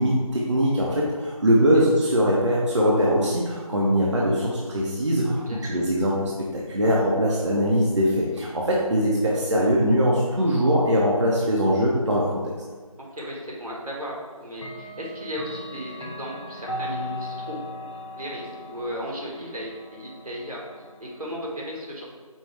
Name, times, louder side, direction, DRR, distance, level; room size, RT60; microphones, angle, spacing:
voice 1, 0.0-12.3, equal, 55° right, -4 dB, 0.6 m, -22 dB
voice 2, 5.4-5.7 8.7-8.8 13.1-17.6 18.2-20.6 21.0-22.1, equal, 85° right, -3 dB, 1.3 m, -35 dB
Clock, 13.2-13.3 14.5-21.3, left 1 dB, 60° left, 0.7 m, -38 dB
5.2 x 2.3 x 3.3 m, 1.4 s
figure-of-eight pair, 170°, 18 cm